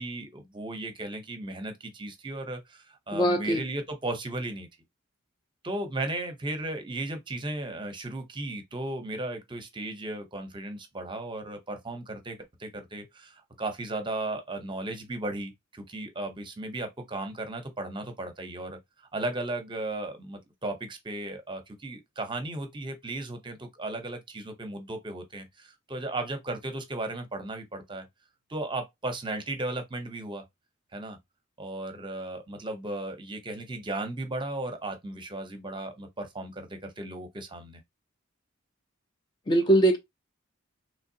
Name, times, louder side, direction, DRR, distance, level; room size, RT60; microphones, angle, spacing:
voice 1, 0.0-4.7 5.6-18.8 19.1-28.0 28.5-30.4 30.9-31.2 31.6-37.8, right 2 dB, 25° right, 0.7 m, -35 dB
voice 2, 3.1-3.6 39.5-40.0, right 1 dB, 25° left, 0.4 m, -21 dB
3.5 x 3.2 x 2.7 m
head